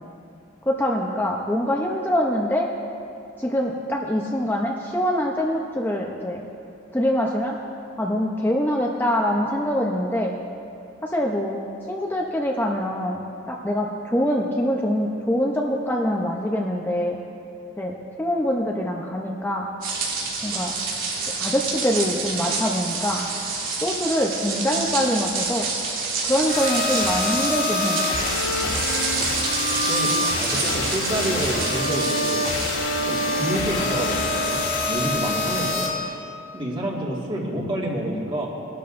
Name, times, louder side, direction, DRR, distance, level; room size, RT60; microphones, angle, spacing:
voice 1, 0.7-2.7 3.4-6.5 6.9-7.6 8.0-10.3 11.0-11.6 11.9-17.2 17.8-19.7 20.4-20.7 21.4-23.2 23.8-25.7 26.2-28.0, equal, 10° left, -1 dB, 0.7 m, -24 dB
sound 1, 19.8-32.8, right 4 dB, 90° right, 3.0 m, -28 dB
sound 2, 26.5-35.9, left 2 dB, 75° left, 2.6 m, -25 dB
voice 2, 29.6-32.5 33.0-34.6 34.9-35.9 36.5-38.5, right 1 dB, 25° right, -3 dB, 2.0 m, -28 dB
20.5 x 12.5 x 2.6 m, 2.5 s
head